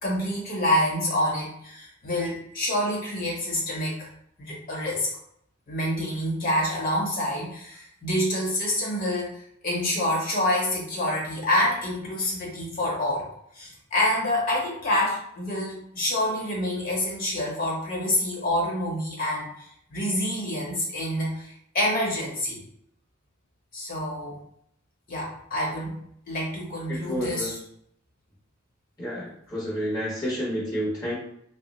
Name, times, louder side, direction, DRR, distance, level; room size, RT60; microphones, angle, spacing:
voice 1, 0.0-4.1 4.4-5.1 5.7-13.3 13.5-22.6 23.7-24.4 25.1-26.0 26.3-27.6, left 1 dB, 45° left, -3 dB, 1.1 m, -27 dB
voice 2, 26.9-27.5 29.0-31.2, equal, 20° left, -8 dB, 0.8 m, -30 dB
3.2 x 2.0 x 3.1 m, 0.71 s
head